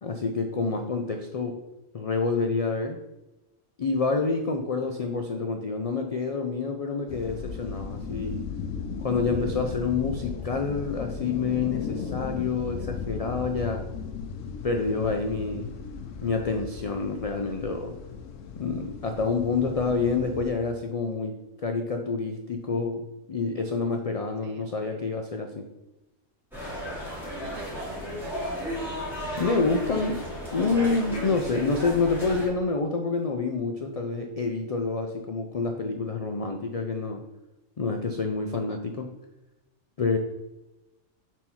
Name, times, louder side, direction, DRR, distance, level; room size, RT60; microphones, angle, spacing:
voice 1, 0.0-1.6 1.9-3.0 3.8-8.5 9.0-13.9 14.6-15.7 16.2-18.0 18.6-25.7 29.4-30.2 30.5-37.2 37.8-39.2 40.0-40.2, left 4 dB, 65° left, 4 dB, 0.3 m, -28 dB
sound 1, 7.1-20.5, left 6 dB, 85° left, 1.0 m, -36 dB
voice 2, 24.4-25.0 27.4-28.5 36.6-36.8 38.5-38.8, right 7 dB, 70° right, 8 dB, 0.9 m, -47 dB
sound 2, 26.5-32.5, equal, ahead, 2.2 m, -34 dB
4.5 x 4.4 x 5.4 m, 0.99 s
omnidirectional pair, 1.3 m